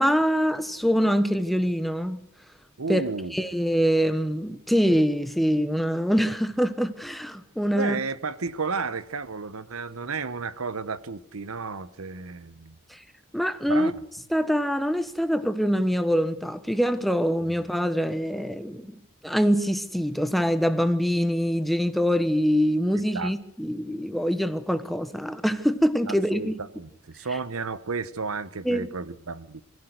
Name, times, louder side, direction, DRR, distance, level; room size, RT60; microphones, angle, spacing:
voice 1, 0.0-2.3 2.9-3.0 3.3-8.0 12.9-13.0 13.3-13.9 14.3-18.9 19.2-26.6 28.6-28.9, equal, ahead, 1.0 m, -24 dB
voice 2, 2.8-3.4 7.7-12.8 13.7-13.9 17.4-17.5 23.1-23.3 26.1-29.6, right 4 dB, 75° right, 1.0 m, -32 dB
23.5 x 15.0 x 8.1 m
head